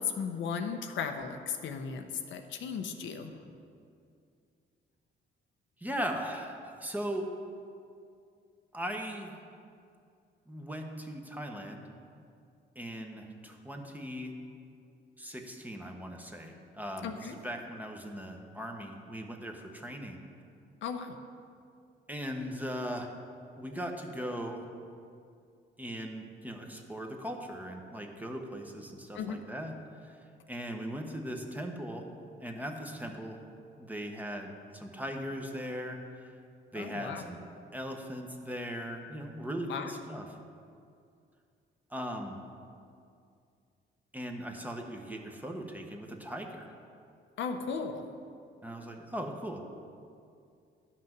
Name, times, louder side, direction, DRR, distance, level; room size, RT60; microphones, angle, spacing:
voice 1, 0.0-3.4 17.0-17.3 20.8-21.2 29.1-29.4 36.7-37.3 39.7-40.0 47.4-48.1, left 6 dB, 75° left, 6 dB, 0.8 m, -36 dB
voice 2, 5.8-7.3 8.7-9.4 10.5-11.8 12.7-14.3 15.2-20.2 22.1-23.1 23.6-24.6 25.8-29.7 30.0-32.1 32.4-33.4 33.8-36.3 36.7-37.4 37.7-40.3 41.9-42.4 44.1-46.7 48.6-49.6, equal, 10° right, 3 dB, 1.1 m, -39 dB
11.0 x 6.0 x 6.0 m, 2.4 s
cardioid pair, 90°, 20 cm